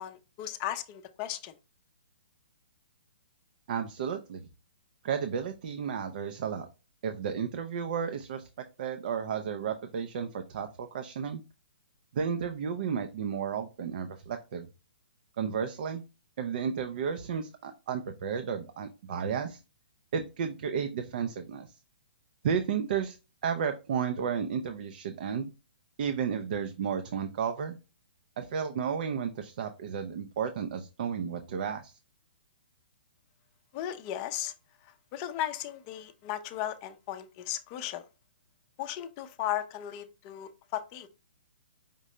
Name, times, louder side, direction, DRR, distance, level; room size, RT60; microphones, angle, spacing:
voice 1, 0.0-1.5 33.7-34.5 34.8-38.0 38.8-41.1, left 12 dB, 30° left, 0.5 m, -36 dB
voice 2, 3.7-4.5 5.0-6.7 7.0-8.5 8.8-11.4 12.1-14.7 15.4-16.0 16.4-19.6 20.1-21.8 22.4-23.2 23.4-25.5 26.0-27.8 28.4-32.0, right 7 dB, 55° right, 0.5 m, -33 dB
5.2 x 2.7 x 3.2 m
hypercardioid pair, 145°, 6 cm